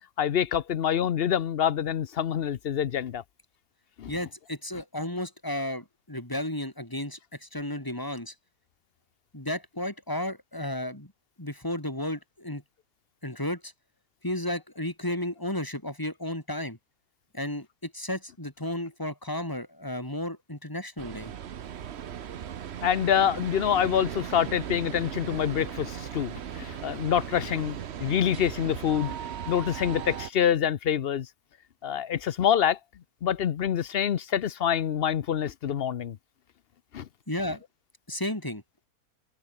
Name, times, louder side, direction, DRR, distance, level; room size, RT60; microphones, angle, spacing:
voice 1, 0.2-3.2 4.0-4.1 22.8-29.1 29.5-31.3 31.8-32.8 33.2-36.2 36.9-37.1, left 9 dB, 55° left, 0.7 m, -26 dB
voice 2, 4.1-8.3 9.3-11.1 11.4-12.6 13.2-13.7 14.2-16.8 17.3-21.3 37.3-37.6 38.1-38.6, left 1 dB, 15° left, 3.8 m, -33 dB
sound 1, 21.0-30.3, right 9 dB, 50° right, 1.0 m, -37 dB
omnidirectional pair, 1.6 m